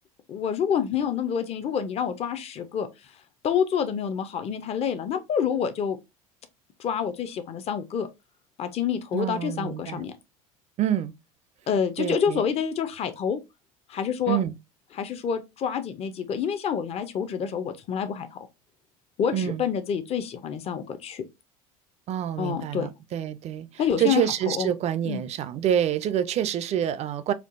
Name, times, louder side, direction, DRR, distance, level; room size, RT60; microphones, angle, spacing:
voice 1, 0.3-2.9 3.4-6.0 6.8-8.1 8.6-10.1 11.7-13.4 13.9-14.4 14.9-18.4 19.2-21.2 22.4-22.9 23.8-24.2 24.5-24.7 25.1-25.2, left 7 dB, 35° left, 0.6 m, -27 dB
voice 2, 9.1-10.1 10.8-11.1 12.0-12.4 14.3-14.5 19.3-19.6 22.1-23.7 24.0-27.3, right 10 dB, 35° right, 0.4 m, -27 dB
4.4 x 2.4 x 2.5 m
hypercardioid pair, 70°, 18 cm